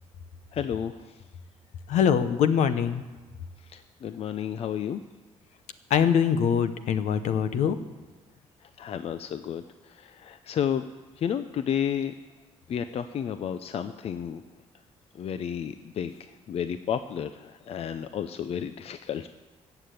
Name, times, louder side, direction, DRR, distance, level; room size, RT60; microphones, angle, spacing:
voice 1, 0.5-1.2 3.6-5.0 8.6-10.8 11.2-12.1 12.7-14.4 15.1-19.3, left 8 dB, 60° left, 10 dB, 0.6 m, -32 dB
voice 2, 1.9-3.0 5.9-7.8, left 8 dB, 75° left, 11 dB, 1.0 m, -23 dB
15.5 x 7.0 x 8.3 m, 1.2 s
cardioid pair, 85°, 12 cm